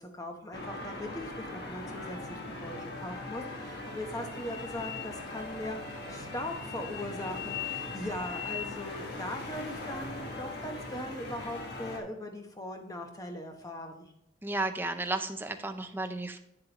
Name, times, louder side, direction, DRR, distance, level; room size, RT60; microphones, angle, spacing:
voice 1, 0.0-14.1, left 1 dB, 20° left, 4 dB, 1.0 m, -40 dB
sound 1, 0.5-12.0, left 3 dB, 55° left, 1.4 m, -40 dB
voice 2, 14.4-16.4, right 2 dB, 10° right, 7 dB, 0.5 m, -33 dB
8.9 x 7.4 x 3.0 m, 0.85 s
head